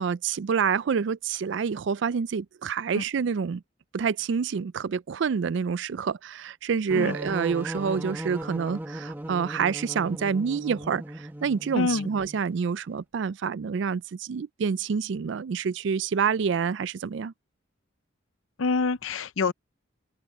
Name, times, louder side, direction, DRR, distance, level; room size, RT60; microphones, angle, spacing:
voice 1, 0.0-3.6 3.9-17.3, right 6 dB, 60° right, 0.4 m, -27 dB
sound 1, 6.9-12.4, right 1 dB, 10° right, 1.0 m, -37 dB
voice 2, 11.7-12.1 18.6-19.5, left 4 dB, 80° left, 0.6 m, -26 dB
open air
head